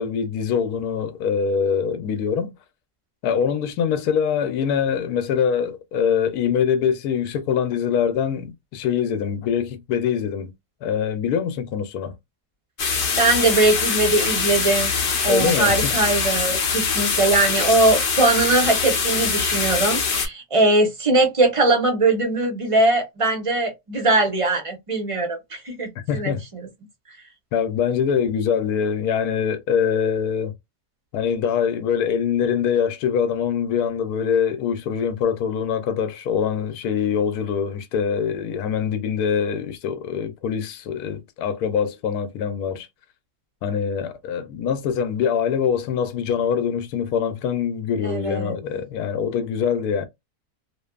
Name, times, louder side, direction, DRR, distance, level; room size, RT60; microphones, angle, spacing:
voice 1, 0.0-2.5 3.2-10.5 10.8-12.1 15.3-15.9 26.1-26.4 27.5-30.5 31.1-42.9 43.6-50.1, left 7 dB, 80° left, 1.1 m, -23 dB
sound 1, 12.8-20.3, left 5 dB, 55° left, 0.6 m, -23 dB
voice 2, 13.1-14.9 15.2-26.7 48.0-48.5, right 2 dB, 30° right, 0.6 m, -21 dB
2.6 x 2.5 x 2.2 m
omnidirectional pair, 1.6 m